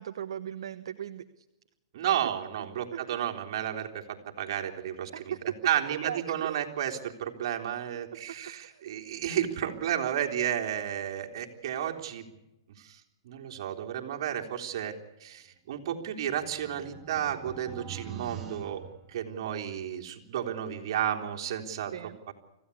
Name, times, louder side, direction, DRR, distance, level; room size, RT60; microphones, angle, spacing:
voice 1, 0.0-1.4 2.2-2.3 2.9-3.0 5.1-5.4 6.0-6.6 8.6-8.8 18.0-18.5 21.9-22.2, right 9 dB, 75° right, 8 dB, 1.1 m, -39 dB
voice 2, 1.9-5.3 5.6-12.2 12.8-14.9 15.2-18.8 19.1-21.9 22.3-22.4, right 10 dB, 55° right, 2 dB, 3.5 m, -32 dB
sound 1, 15.7-19.7, right 8 dB, 15° right, 2.7 m, -45 dB
26.0 x 15.5 x 8.5 m, 0.96 s
hypercardioid pair, 140°, 3 cm